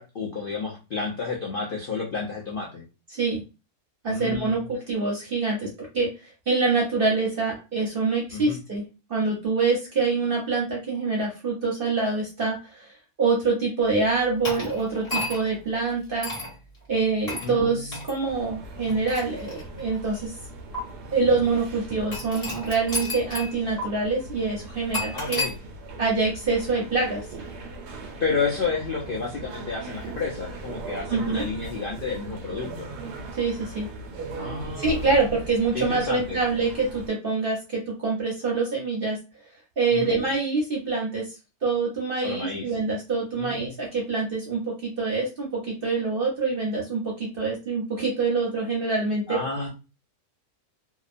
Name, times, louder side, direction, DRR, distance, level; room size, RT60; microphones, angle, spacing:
voice 1, 0.0-2.8 4.1-4.7 8.3-8.6 17.4-17.9 25.1-25.6 28.2-32.9 34.3-35.2 35.7-36.4 39.9-40.1 42.2-42.8 43.4-43.7 49.3-49.7, left 4 dB, 65° left, -2 dB, 0.5 m, -31 dB
voice 2, 3.1-3.4 4.0-8.8 9.1-12.9 13.2-16.3 16.9-20.3 21.1-25.4 26.0-27.2 31.1-31.4 33.4-33.9 34.8-39.2 39.8-41.3 41.6-49.4, right 4 dB, 50° right, -2 dB, 0.7 m, -25 dB
sound 1, 14.4-15.6 16.2-16.5 17.3-17.5 17.9-18.1 18.8-20.0 20.7-20.8 22.1-23.5 23.8-23.9 24.9-25.5, left 1 dB, 30° left, 1.1 m, -32 dB
sound 2, 18.2-37.1, right 2 dB, 90° right, 1.2 m, -39 dB
2.8 x 2.1 x 2.5 m, 0.30 s
omnidirectional pair, 1.6 m